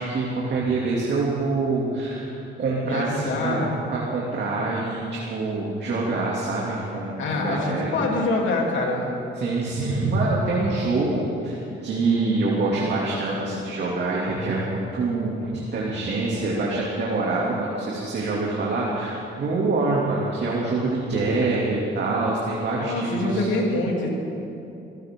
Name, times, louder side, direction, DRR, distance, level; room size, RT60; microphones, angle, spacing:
voice 1, 0.0-2.3 2.6-7.9 9.4-23.5, right 3 dB, 60° right, -5 dB, 2.7 m, -25 dB
voice 2, 2.8-3.8 7.2-9.1 22.7-24.1, left 2 dB, 75° left, -2 dB, 3.4 m, -25 dB
25.0 x 14.5 x 3.8 m, 2.8 s
cardioid pair, 90°, 20 cm